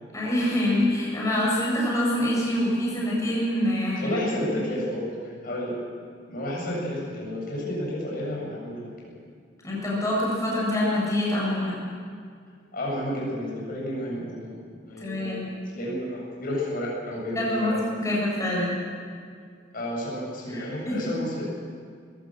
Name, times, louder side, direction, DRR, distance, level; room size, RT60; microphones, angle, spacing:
voice 1, 0.1-4.6 9.6-11.9 15.0-15.5 17.3-18.8 20.5-21.0, left 1 dB, 15° left, -5 dB, 8.0 m, -26 dB
voice 2, 4.0-5.8 6.3-9.1 12.7-14.5 14.9-17.8 19.7-21.4, left 1 dB, 50° left, -4 dB, 7.5 m, -31 dB
22.0 x 17.5 x 7.9 m, 2.1 s
head